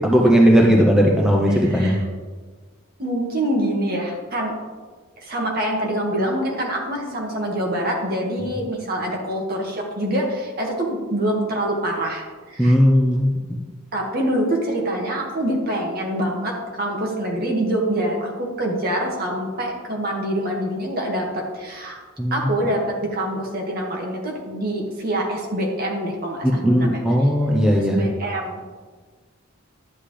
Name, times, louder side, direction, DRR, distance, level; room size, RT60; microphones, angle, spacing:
voice 1, 0.0-2.0 12.6-13.6 22.2-22.4 26.4-28.0, equal, 5° right, -1 dB, 0.7 m, -17 dB
voice 2, 1.5-2.1 3.0-4.5 5.2-12.8 13.9-22.0 22.3-27.0 27.8-28.6, right 1 dB, 45° right, -1 dB, 1.9 m, -25 dB
11.5 x 8.1 x 3.3 m, 1.4 s
head